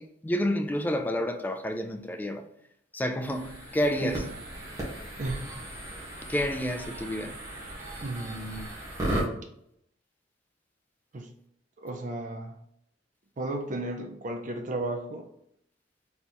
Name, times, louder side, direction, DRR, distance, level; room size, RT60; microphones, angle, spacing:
voice 1, 0.0-2.5 2.9-4.3 6.3-7.4, equal, 10° left, 0.3 m, -29 dB
sound 1, 3.2-9.3, right 1 dB, 20° right, 1.3 m, -36 dB
voice 2, 5.2-5.5 8.0-8.7 11.1-11.3 11.8-12.6 13.4-15.3, right 2 dB, 45° right, 0.5 m, -34 dB
4.3 x 3.4 x 3.0 m
head